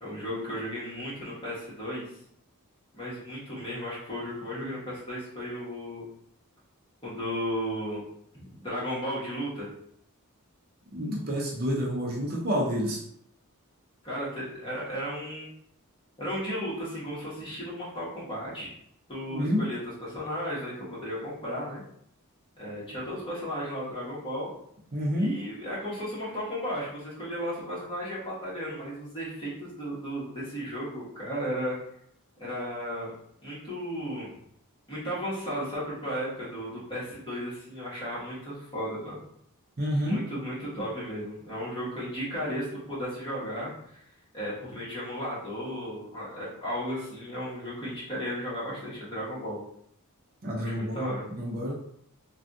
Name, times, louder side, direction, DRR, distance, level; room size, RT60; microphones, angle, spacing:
voice 1, 0.0-2.1 2.9-6.0 7.0-8.0 8.3-9.7 14.0-15.5 16.2-18.7 19.1-21.8 22.6-24.5 25.2-31.7 32.4-33.1 33.4-34.3 34.9-39.2 40.0-43.7 44.3-49.6 50.6-51.2, equal, 25° left, -8 dB, 1.2 m, -34 dB
voice 2, 10.9-13.0 19.3-19.6 24.9-25.3 39.8-40.2 50.4-51.7, equal, 45° right, -3 dB, 0.6 m, -29 dB
3.3 x 2.3 x 2.6 m, 0.71 s
head